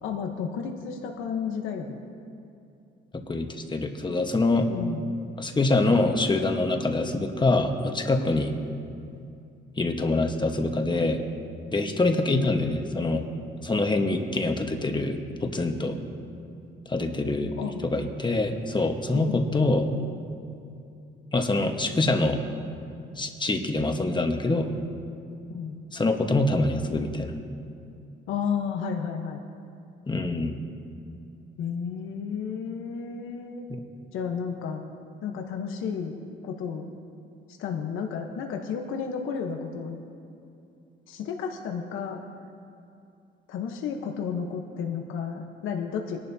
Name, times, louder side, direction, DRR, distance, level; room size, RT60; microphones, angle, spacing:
voice 1, 0.0-2.0 4.6-5.2 12.3-12.7 17.6-17.8 19.1-19.4 25.5-25.8 28.3-29.4 31.6-33.6 34.1-34.8 35.2-36.2 36.4-36.9 37.6-40.0 41.1-42.2 43.5-46.2, left 6 dB, 90° left, 3 dB, 1.1 m, -32 dB
voice 2, 3.1-4.7 5.4-8.5 9.8-11.2 11.7-13.2 13.6-16.0 16.9-17.5 17.8-19.9 21.3-22.4 23.2-24.7 25.9-27.4 30.1-30.6, left 2 dB, 25° left, 5 dB, 1.2 m, -25 dB
21.0 x 11.0 x 2.8 m, 2.6 s
cardioid pair, 90°, 20 cm